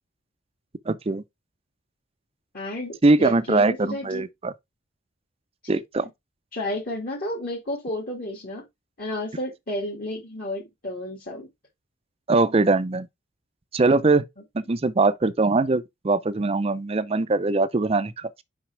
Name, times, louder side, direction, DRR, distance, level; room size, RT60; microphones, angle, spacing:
voice 1, 0.9-1.2 3.0-4.5 5.7-6.1 12.3-13.1 13.7-14.2 14.5-18.4, right 3 dB, 30° right, 0.5 m, -22 dB
voice 2, 2.5-4.3 5.7-6.1 6.5-8.6 9.0-11.5, left 1 dB, 45° left, 2.1 m, -32 dB
5.9 x 5.2 x 3.2 m
head